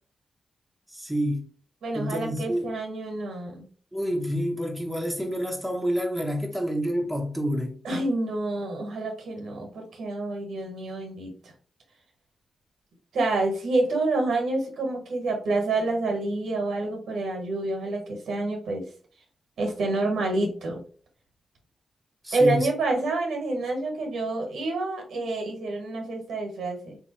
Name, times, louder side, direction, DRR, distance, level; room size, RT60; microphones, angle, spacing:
voice 1, 0.9-1.4 1.9-2.8 3.9-7.8 22.2-22.7, equal, 5° right, 1.2 m, -28 dB
voice 2, 1.8-3.7 7.8-11.3 13.1-18.9 19.6-20.8 22.3-27.0, right 2 dB, 80° right, 1.3 m, -28 dB
3.4 x 3.0 x 2.9 m
supercardioid pair, 50°, 0 cm